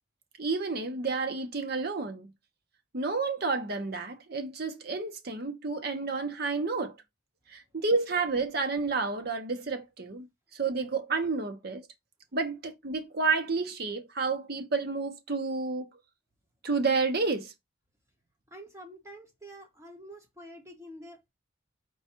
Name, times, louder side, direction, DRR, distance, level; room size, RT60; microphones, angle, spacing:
voice 1, 0.4-2.3 2.9-6.9 7.5-10.3 10.5-11.9 12.3-15.9 16.6-17.5, right 4 dB, 50° right, 0.7 m, -30 dB
voice 2, 18.5-21.3, equal, 15° right, 1.1 m, -47 dB
4.7 x 2.3 x 4.3 m
head